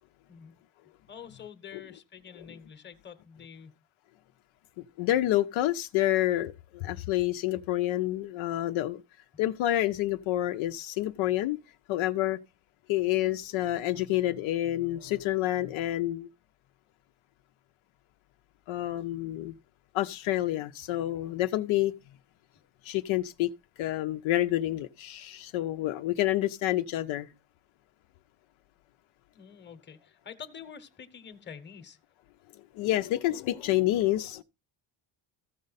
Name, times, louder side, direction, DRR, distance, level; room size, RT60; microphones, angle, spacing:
voice 1, 1.1-3.7 29.3-32.0, left 7 dB, 20° left, 1.0 m, -47 dB
voice 2, 5.0-9.0 9.4-11.6 11.9-12.4 12.9-16.3 18.7-19.5 19.9-21.9 22.8-23.5 23.8-27.3 32.7-34.4, left 14 dB, 70° left, 0.7 m, -28 dB
14.5 x 5.3 x 4.0 m
cardioid pair, 130°, 50 cm